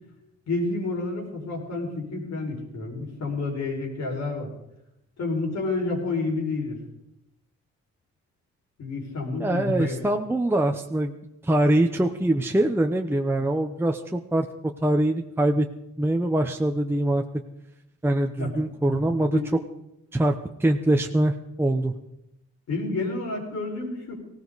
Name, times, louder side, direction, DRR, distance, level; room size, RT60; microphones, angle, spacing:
voice 1, 0.5-4.5 5.2-6.8 8.8-10.0 18.4-19.4 22.7-24.1, left 3 dB, 60° left, 0 dB, 5.5 m, -29 dB
voice 2, 9.4-11.1 11.4-14.5 14.8-15.7 16.0-17.2 18.0-19.4 20.1-21.3 21.6-21.9, right 1 dB, 10° right, 3 dB, 0.9 m, -23 dB
18.5 x 16.5 x 4.1 m, 0.86 s
cardioid pair, 90°, 30 cm